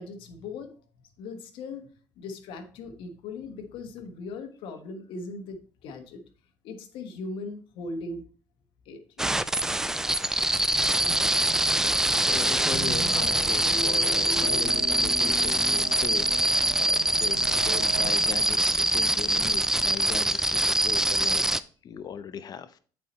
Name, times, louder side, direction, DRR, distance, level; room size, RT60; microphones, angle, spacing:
voice 1, 0.0-1.9 2.2-6.2 6.6-8.2 8.8-9.5, left 3 dB, 75° left, 7 dB, 1.3 m, -39 dB
sound 1, 9.2-21.6, right 1 dB, 5° right, 0.4 m, -24 dB
sound 2, 10.8-18.5, right 10 dB, 65° right, 0.9 m, -42 dB
voice 2, 11.7-22.8, left 7 dB, 50° left, 13 dB, 0.7 m, -39 dB
sound 3, 12.7-21.4, left 2 dB, 10° left, 2.7 m, -41 dB
8.4 x 4.7 x 4.2 m, 0.41 s
cardioid pair, 95°, 9 cm